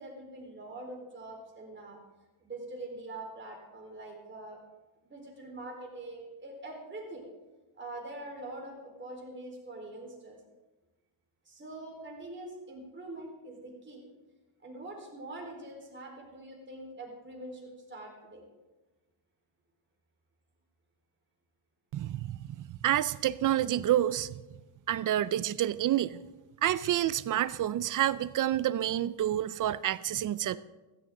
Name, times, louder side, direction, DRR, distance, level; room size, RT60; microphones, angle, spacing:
voice 1, 0.0-2.0 2.4-4.6 5.0-7.2 7.8-10.4 11.4-14.0 14.6-18.4, right 2 dB, 25° right, 0 dB, 4.2 m, -44 dB
voice 2, 21.9-24.3 24.9-26.2 26.6-30.6, right 12 dB, 40° right, 18 dB, 0.4 m, -28 dB
15.5 x 13.5 x 3.8 m, 1.1 s
cardioid pair, 120°, 49 cm